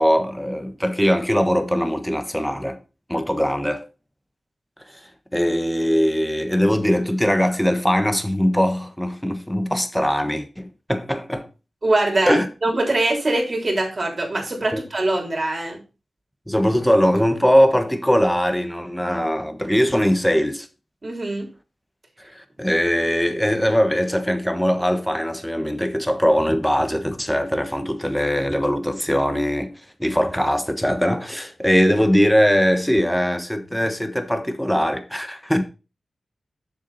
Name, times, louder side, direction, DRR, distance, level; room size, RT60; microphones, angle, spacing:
voice 1, 0.0-2.8 3.1-3.8 5.3-11.5 12.3-12.5 14.7-14.8 16.5-20.7 22.3-29.7 30.0-35.6, equal, 5° left, 1.2 m, -21 dB
voice 2, 11.8-15.8 21.0-21.5, right 2 dB, 40° right, 3.4 m, -23 dB
7.1 x 6.9 x 4.1 m
wide cardioid pair, 80°, 0 cm